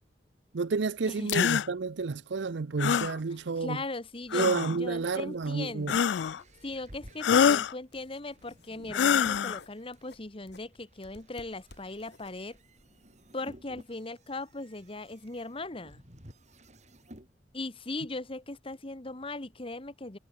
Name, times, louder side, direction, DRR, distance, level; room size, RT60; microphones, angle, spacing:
voice 1, 0.5-3.8 4.3-6.0, right 4 dB, 85° right, 0.6 m, -30 dB
sound 1, 1.3-1.7 2.8-3.1 4.3-4.8 5.9-6.4 7.2-7.7 8.9-9.6, left 7 dB, 85° left, 0.4 m, -25 dB
voice 2, 3.6-4.5 4.8-6.0 6.6-12.6 13.3-16.0 17.5-20.2, left 2 dB, 30° left, 1.4 m, -39 dB
sound 2, 4.2-13.4, left 2 dB, 70° left, 6.8 m, -61 dB
sound 3, 5.3-10.1 10.7-17.3, right 1 dB, 40° right, 7.8 m, -54 dB
head